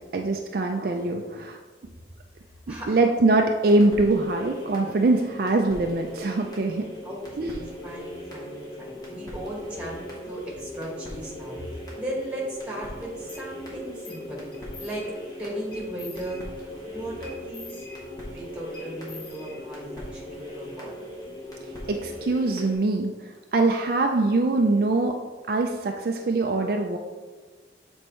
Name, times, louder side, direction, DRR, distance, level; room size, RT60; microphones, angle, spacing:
voice 1, 0.1-1.6 2.7-6.9 7.4-7.6 21.9-23.1 23.5-25.2 25.5-27.0, right 2 dB, 50° right, 3 dB, 0.4 m, -23 dB
voice 2, 2.7-3.0 7.0-15.1 15.4-17.9 18.3-20.9, right 1 dB, 5° right, -3 dB, 1.5 m, -37 dB
sound 1, 3.6-22.7, left 1 dB, 20° left, 1.4 m, -39 dB
sound 2, 13.3-13.5 14.1-14.3 14.5-15.3 15.7-16.7 17.2-18.4 18.7-20.0, left 4 dB, 55° left, 1.2 m, -46 dB
7.7 x 4.3 x 3.1 m, 1.4 s
head